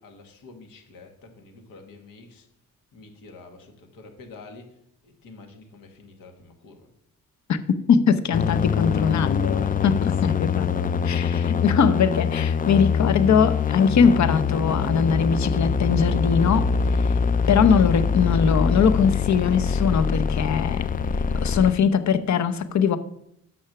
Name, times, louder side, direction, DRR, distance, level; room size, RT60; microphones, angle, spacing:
voice 1, 0.0-2.5 2.9-4.8 5.0-6.9 9.4-11.9, left 3 dB, 80° left, 1.5 m, -46 dB
voice 2, 7.9-10.7 11.1-17.1 17.5-20.8 21.3-23.0, left 6 dB, 55° left, 0.8 m, -21 dB
sound 1, 8.3-21.7, left 6 dB, 25° left, 0.4 m, -24 dB
6.1 x 5.9 x 5.9 m
supercardioid pair, 50°, 33 cm